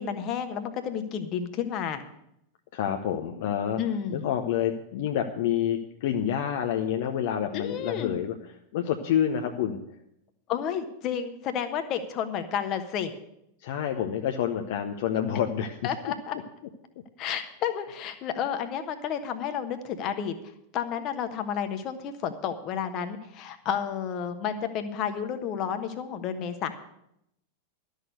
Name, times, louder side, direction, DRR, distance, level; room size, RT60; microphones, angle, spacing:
voice 1, 0.0-2.0 3.8-4.3 7.5-8.1 10.5-13.1 15.8-16.4 17.2-20.4 20.7-26.7, left 8 dB, 35° left, 8 dB, 1.2 m, -31 dB
voice 2, 2.7-3.8 4.1-8.3 8.7-9.8 13.6-15.9, left 9 dB, 55° left, 4 dB, 0.8 m, -28 dB
12.5 x 6.5 x 8.0 m, 0.78 s
figure-of-eight pair, 90°, 0 cm